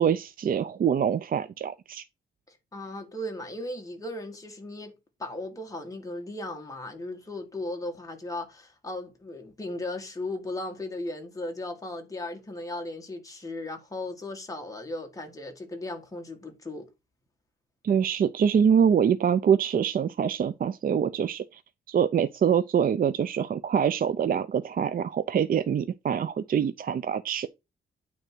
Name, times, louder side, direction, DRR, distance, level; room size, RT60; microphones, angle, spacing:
voice 1, 0.0-2.0 17.8-21.6 21.9-27.5, right 8 dB, 45° right, 0.4 m, -25 dB
voice 2, 2.5-16.9, left 2 dB, 15° left, 1.8 m, -37 dB
9.1 x 3.5 x 6.1 m
wide cardioid pair, 165°, 20 cm